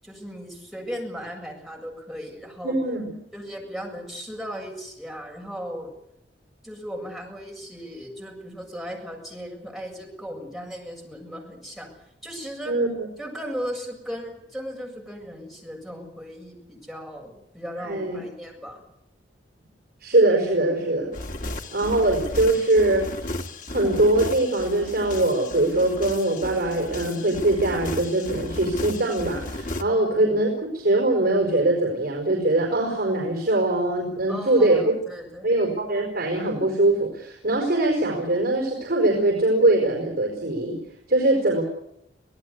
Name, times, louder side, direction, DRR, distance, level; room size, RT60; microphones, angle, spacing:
voice 1, 0.0-2.8 3.3-5.9 6.6-11.9 12.2-12.8 13.2-18.8 29.9-30.1 34.3-35.5, equal, ahead, -1 dB, 7.6 m, -36 dB
voice 2, 2.6-3.1 12.7-13.1 17.8-18.2 20.0-21.1 21.7-23.0 23.7-34.8 35.4-40.8 41.1-41.6, right 2 dB, 55° right, 1 dB, 5.3 m, -22 dB
sound 1, 21.1-29.8, left 1 dB, 45° left, 2.1 m, -34 dB
26.0 x 18.0 x 8.3 m, 0.78 s
head